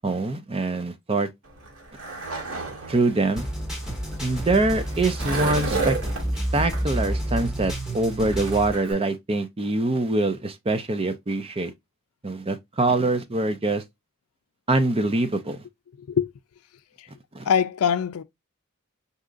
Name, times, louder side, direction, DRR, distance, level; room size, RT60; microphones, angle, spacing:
voice 1, 0.0-1.3 2.9-3.5 4.2-6.0 6.5-11.7 12.2-13.8 14.7-15.6 17.3-17.5, right 2 dB, 25° right, 0.6 m, -24 dB
Skateboard, 1.5-8.9, right 3 dB, 85° right, 1.9 m, -33 dB
sound 1, 3.4-8.7, right 1 dB, 5° right, 1.2 m, -29 dB
voice 2, 16.0-16.3 17.0-17.1 17.5-18.2, left 7 dB, 85° left, 0.4 m, -23 dB
4.9 x 2.8 x 2.4 m
head